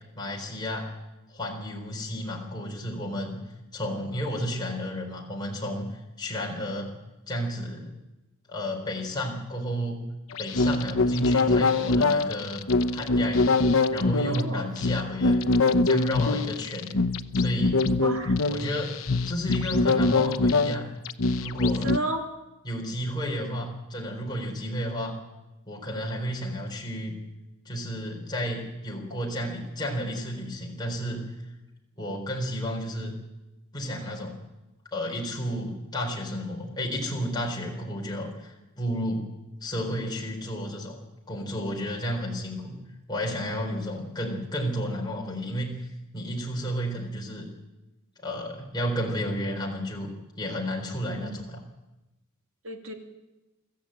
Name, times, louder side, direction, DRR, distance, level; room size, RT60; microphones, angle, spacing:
voice 1, 0.2-0.9 1.3-3.4 3.7-6.9 7.3-8.0 8.5-10.0 10.4-12.6 12.9-13.4 13.9-15.4 15.8-17.0 17.3-17.8 18.5-18.9 19.2-20.9 21.4-22.0 22.6-25.1 25.7-27.2 27.6-31.2 32.0-33.1 33.7-34.4 34.9-39.3 39.6-41.0 41.3-42.8 43.1-47.5 48.2-50.1 50.4-51.6, equal, 20° left, -1 dB, 4.2 m, -32 dB
sound 1, 10.3-22.0, left 3 dB, 75° left, 0.8 m, -24 dB
voice 2, 14.3-14.7 18.0-18.4 21.8-22.3 51.2-51.4 52.6-52.9, right 1 dB, 75° right, 3 dB, 2.7 m, -32 dB
24.0 x 14.5 x 8.9 m, 1.0 s
head